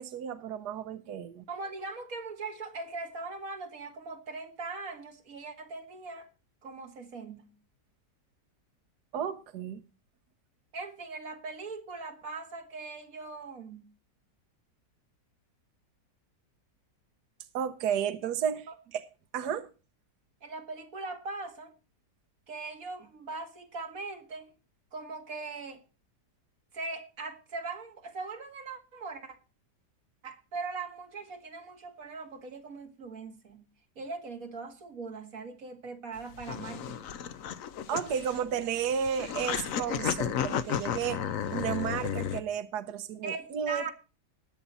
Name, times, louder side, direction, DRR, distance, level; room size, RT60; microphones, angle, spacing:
voice 1, 0.0-1.4 9.1-9.8 17.5-18.7 18.9-19.0 19.3-19.7 37.9-41.2 41.5-43.9, right 8 dB, 70° right, 1.4 m, -32 dB
voice 2, 1.5-6.3 6.6-7.5 10.7-13.8 20.4-21.7 22.5-24.5 24.9-25.8 26.7-29.4 30.2-33.7 34.0-37.0 43.2-43.9, right 3 dB, 55° right, 2.2 m, -40 dB
sound 1, 36.2-42.4, left 9 dB, 60° left, 1.1 m, -33 dB
20.0 x 7.2 x 4.1 m
omnidirectional pair, 1.8 m